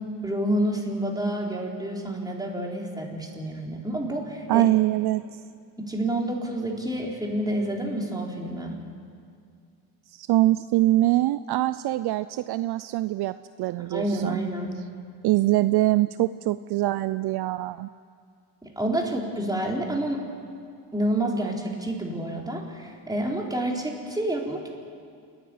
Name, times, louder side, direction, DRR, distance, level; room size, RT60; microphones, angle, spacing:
voice 1, 0.2-4.6 5.9-8.8 13.8-14.7 18.8-20.2 20.9-24.7, right 1 dB, 10° right, -1 dB, 3.9 m, -28 dB
voice 2, 4.5-5.2 10.1-14.4 15.2-17.9, right 16 dB, 60° right, 14 dB, 0.6 m, -23 dB
28.5 x 10.5 x 9.5 m, 2.3 s
cardioid pair, 95°, 44 cm